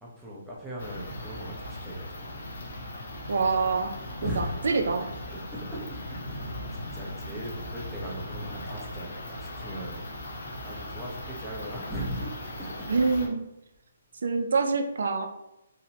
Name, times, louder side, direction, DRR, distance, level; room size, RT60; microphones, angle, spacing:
voice 1, 0.0-2.2 4.2-4.5 5.3-12.9, right 1 dB, 5° right, -6 dB, 0.6 m, -39 dB
sound 1, 0.8-13.3, left 1 dB, 65° left, 0.6 m, -39 dB
voice 2, 3.3-3.9 4.2-5.1 12.9-13.4 14.2-15.3, right 4 dB, 75° right, 6 dB, 0.3 m, -26 dB
2.8 x 2.0 x 2.7 m, 0.89 s
hypercardioid pair, 155°, 0 cm